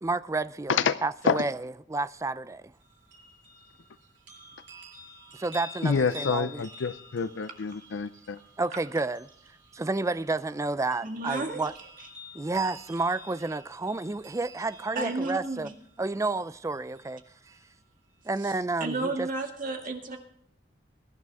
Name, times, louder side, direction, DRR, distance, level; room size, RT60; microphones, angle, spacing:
voice 1, 0.0-2.6 5.3-6.7 8.6-9.3 9.7-11.7 12.3-15.7 16.0-17.2 18.2-19.3, right 3 dB, 15° right, 0.4 m, -30 dB
sound 1, 2.7-17.7 18.2-18.3, left 1 dB, 80° right, 6.4 m, -49 dB
voice 2, 5.8-8.4, left 5 dB, 85° left, 0.5 m, -27 dB
voice 3, 11.0-11.6 15.0-15.7 18.4-18.5 18.8-20.2, right 2 dB, 50° right, 2.0 m, -32 dB
21.5 x 11.0 x 3.5 m
head